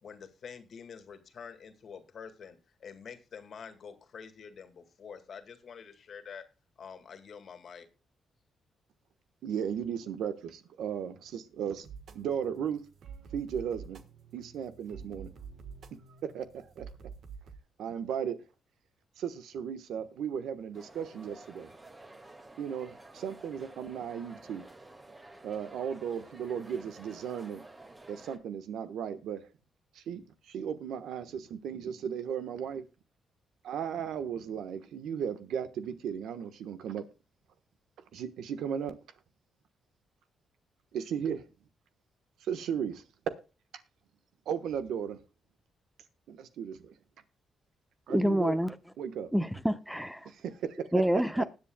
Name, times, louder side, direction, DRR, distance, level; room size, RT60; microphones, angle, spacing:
voice 1, 0.0-6.4 6.8-7.9, left 6 dB, 55° left, 2.0 m, -47 dB
voice 2, 9.4-11.9 12.1-12.8 13.3-14.0 14.3-15.3 16.1-16.8 17.8-18.4 19.2-21.7 22.6-24.6 25.4-27.7 28.1-29.5 29.9-32.8 33.6-37.0 38.1-38.9 40.9-41.4 42.4-43.0 44.4-45.2 46.3-46.9 48.1-48.6 49.0-49.3 50.2-50.8 51.3-51.4, right 8 dB, 85° right, 1.3 m, -36 dB
sound 1, 11.8-17.6, right 6 dB, 65° right, 1.4 m, -48 dB
sound 2, 20.7-28.4, right 2 dB, 20° right, 2.0 m, -52 dB
voice 3, 48.1-48.8 49.3-50.3 50.9-51.4, equal, ahead, 0.9 m, -27 dB
20.5 x 7.7 x 2.3 m
cardioid pair, 105°, 0 cm